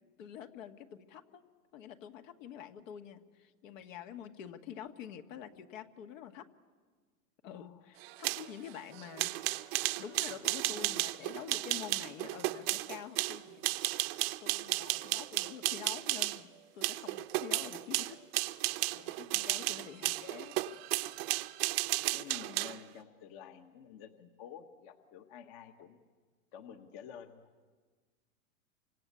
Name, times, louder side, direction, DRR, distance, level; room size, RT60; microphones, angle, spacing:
voice 1, 0.2-1.4 1.7-6.5 7.4-9.7 10.0-13.7 14.4-18.2 18.9-20.6, left 9 dB, 55° left, 7 dB, 1.9 m, -47 dB
voice 2, 7.5-7.8 10.7-11.0 19.3-19.6 22.1-26.0 26.5-27.5, left 8 dB, 35° left, 7 dB, 1.5 m, -50 dB
sound 1, 8.0-16.4 16.8-22.8, right 19 dB, 40° right, 0.9 m, -34 dB
28.5 x 25.0 x 8.3 m, 1.5 s
hypercardioid pair, 145°, 45 cm